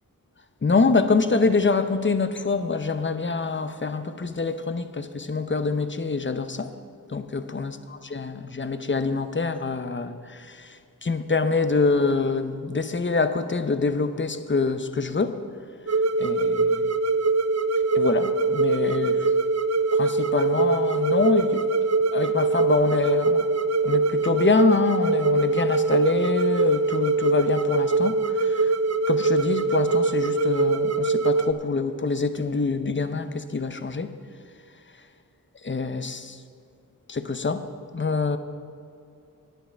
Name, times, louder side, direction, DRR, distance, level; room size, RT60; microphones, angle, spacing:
voice 1, 0.6-6.7 7.1-10.7 11.0-15.4 16.2-16.9 17.9-19.2 19.9-21.6 22.1-23.5 23.8-28.1 28.4-28.7 29.1-34.1 35.6-36.4 37.1-37.6 37.9-38.4, left 4 dB, 35° left, 10 dB, 0.7 m, -25 dB
sound 1, 15.9-31.5, right 3 dB, 45° right, 0.5 m, -23 dB
10.0 x 9.1 x 5.7 m, 2.6 s
wide cardioid pair, 45°, 35 cm